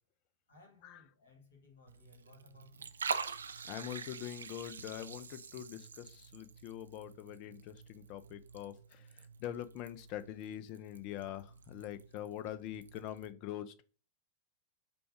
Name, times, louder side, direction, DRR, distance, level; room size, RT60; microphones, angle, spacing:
voice 1, 0.5-2.9, left 4 dB, 65° left, 1.7 m, -62 dB
Liquid, 1.9-13.3, right 5 dB, 70° right, 0.3 m, -46 dB
voice 2, 3.6-13.8, left 12 dB, 40° left, 0.5 m, -44 dB
5.1 x 2.3 x 4.5 m
figure-of-eight pair, 90°, 0 cm